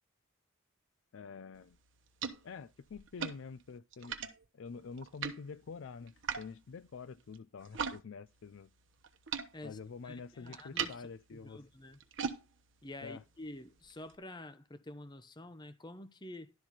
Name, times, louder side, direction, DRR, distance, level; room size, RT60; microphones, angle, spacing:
voice 1, 1.1-1.8 2.4-4.2 4.5-8.7 9.6-11.6 13.0-13.2, left 5 dB, 65° left, 0.4 m, -47 dB
sound 1, 1.5-8.0 8.3-14.2, right 6 dB, 60° right, 1.0 m, -43 dB
voice 2, 10.0-12.0 12.8-16.5, left 1 dB, 20° left, 0.7 m, -48 dB
12.0 x 4.1 x 6.0 m
head